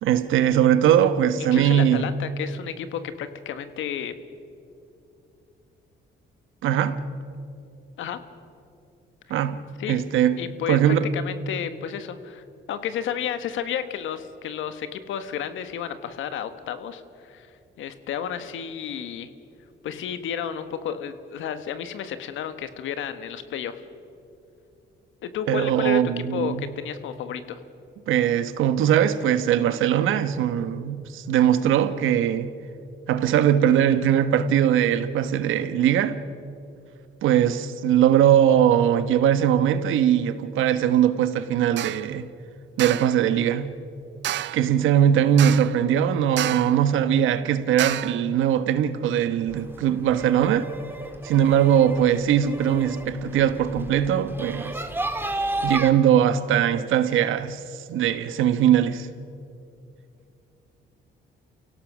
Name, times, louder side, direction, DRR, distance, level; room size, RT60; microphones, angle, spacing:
voice 1, 0.0-2.1 6.6-7.0 9.3-9.6 9.9-10.4 10.7-11.1 25.5-26.7 28.1-32.5 33.1-36.2 37.2-42.3 42.8-43.8 44.5-50.7 51.2-54.8 55.6-57.6 57.9-59.1, right 10 dB, 85° right, 1.1 m, -21 dB
voice 2, 1.4-4.1 8.0-8.2 9.8-10.0 10.4-17.5 17.8-19.3 19.8-23.8 25.2-27.6, left 9 dB, 80° left, 1.4 m, -32 dB
sound 1, 41.8-42.1 42.8-43.2 44.2-44.7 45.4-45.8 46.4-46.8 47.8-48.2, right 12 dB, 65° right, 0.5 m, -30 dB
sound 2, 49.5-55.9, right 2 dB, 10° right, 1.7 m, -33 dB
28.5 x 17.0 x 6.3 m
cardioid pair, 90°, 20 cm